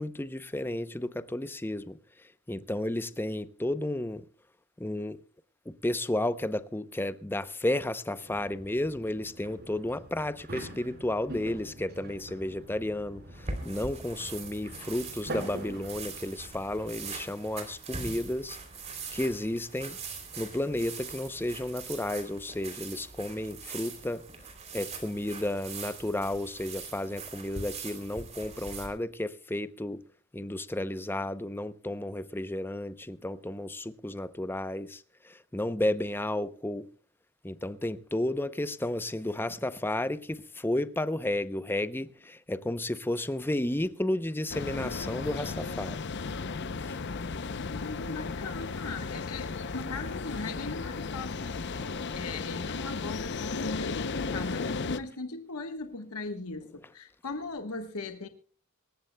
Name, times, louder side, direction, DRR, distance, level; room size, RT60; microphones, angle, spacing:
voice 1, 0.0-2.0 2.5-4.2 4.8-5.2 5.7-18.6 19.1-20.0 20.4-24.2 24.7-30.0 30.3-36.9 37.4-46.0 46.8-47.0 51.7-52.2, left 1 dB, 10° left, 0.6 m, -32 dB
sound 1, 8.2-17.2, right 1 dB, 50° right, 4.9 m, -45 dB
sound 2, 13.3-28.9, right 4 dB, 30° right, 3.1 m, -42 dB
sound 3, 44.5-55.0, left 4 dB, 50° left, 0.6 m, -35 dB
voice 2, 47.7-51.4 52.2-58.3, left 3 dB, 90° left, 1.3 m, -38 dB
25.5 x 14.5 x 2.2 m
head